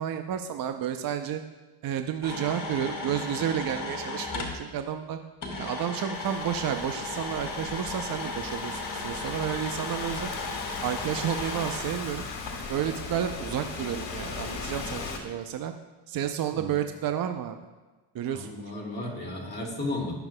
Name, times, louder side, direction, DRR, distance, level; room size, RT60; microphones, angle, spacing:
voice 1, 0.0-1.4 1.8-5.2 5.6-10.3 10.8-12.3 12.7-15.7 16.1-17.6 18.1-18.5, right 9 dB, 50° right, 7 dB, 0.6 m, -31 dB
sound 1, 2.2-4.6 5.4-11.8, left 3 dB, 45° left, 2.2 m, -36 dB
Thunderstorm / Rain, 6.1-15.2, left 4 dB, 75° left, 1.6 m, -38 dB
voice 2, 18.3-20.1, left 2 dB, 20° left, -1 dB, 2.2 m, -34 dB
14.5 x 6.9 x 2.2 m, 1.2 s
cardioid pair, 90°, 45 cm